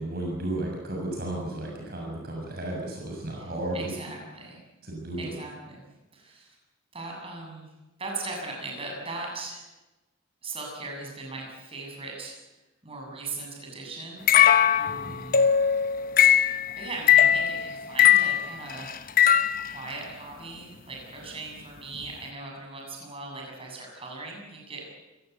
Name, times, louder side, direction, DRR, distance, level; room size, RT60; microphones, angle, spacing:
voice 1, 0.0-3.9 4.8-5.3 14.9-15.1, right 1 dB, 50° right, -1 dB, 6.8 m, -33 dB
voice 2, 3.7-4.6 5.2-5.8 6.1-6.6 6.9-7.7 8.0-9.7 10.4-12.4 12.8-14.2 14.8-15.5 16.7-18.9 19.6-24.8, right 3 dB, 30° right, 0 dB, 7.8 m, -39 dB
sound 1, 14.3-19.8, left 9 dB, 45° left, 1.1 m, -20 dB
28.5 x 18.0 x 8.3 m, 1.1 s
head